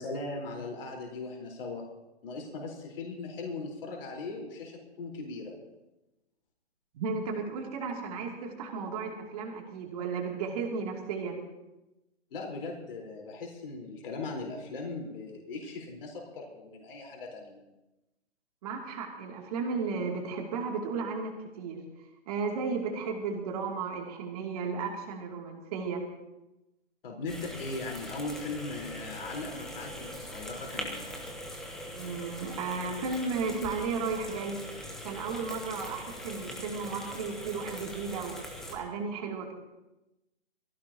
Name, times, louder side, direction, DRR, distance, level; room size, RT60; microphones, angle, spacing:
voice 1, 0.0-1.8 2.2-5.5 12.3-17.6 27.0-31.1, left 3 dB, 50° left, -1 dB, 4.4 m, -39 dB
voice 2, 6.9-11.4 18.6-21.8 22.3-26.0 31.9-34.6 35.0-38.3 38.7-39.5, right 4 dB, 35° right, 1 dB, 2.7 m, -34 dB
sound 1, 27.3-38.8, equal, ahead, 0.8 m, -42 dB
22.5 x 15.5 x 2.9 m, 0.97 s
hypercardioid pair, 155°, 35 cm